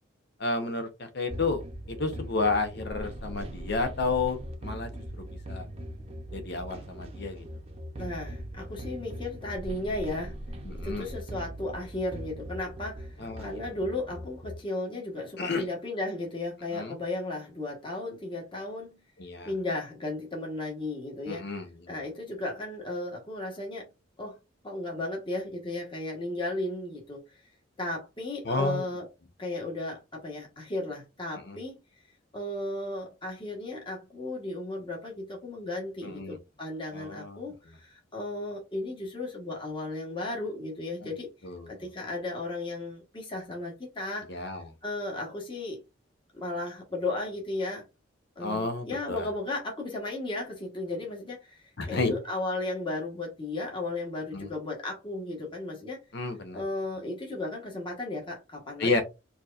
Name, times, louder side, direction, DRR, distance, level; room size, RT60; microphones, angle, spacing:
voice 1, 0.4-1.6 1.9-4.9 5.5-5.7 6.3-7.4 10.6-11.1 13.2-13.5 15.4-15.7 16.7-17.0 19.2-19.5 21.3-21.9 28.4-28.8 31.4-31.6 36.0-36.4 36.9-37.4 41.0-41.1 41.4-41.7 44.3-44.6 48.4-49.3 51.8-52.1 54.3-54.5 56.1-56.6 58.8-59.0, left 3 dB, 60° left, 1.0 m, -31 dB
sound 1, 1.3-14.6, equal, 30° right, 0.8 m, -40 dB
voice 2, 8.0-10.4 10.8-19.0 19.4-21.5 21.9-23.9 24.2-24.4 24.6-27.4 27.8-29.1 29.4-31.8 32.3-41.3 41.7-44.5 44.8-45.8 46.3-47.8 48.4-56.0 56.5-59.0, left 2 dB, 25° left, 1.3 m, -35 dB
4.5 x 2.9 x 2.5 m
head